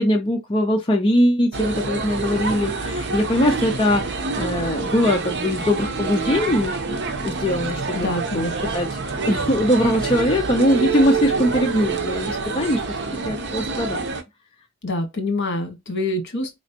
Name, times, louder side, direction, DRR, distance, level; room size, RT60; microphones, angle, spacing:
voice 1, 0.0-8.0 8.3-12.8 13.1-14.0, left 1 dB, 25° left, 0.6 m, -21 dB
sound 1, 1.5-14.2, right 4 dB, 55° right, 0.8 m, -27 dB
voice 2, 7.9-8.5 14.8-16.6, left 2 dB, 55° left, 1.4 m, -26 dB
4.2 x 3.0 x 2.8 m
head